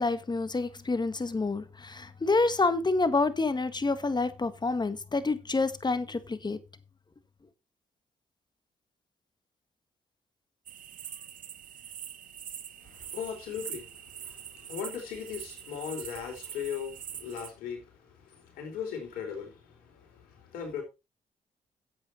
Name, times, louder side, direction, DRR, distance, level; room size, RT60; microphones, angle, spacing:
voice 1, 0.0-6.6, left 3 dB, 30° left, 1.7 m, -28 dB
sound 1, 10.7-17.5, right 9 dB, 70° right, 1.2 m, -44 dB
voice 2, 12.8-20.8, left 7 dB, 85° left, 4.3 m, -39 dB
10.5 x 8.2 x 4.3 m
supercardioid pair, 50°, 15 cm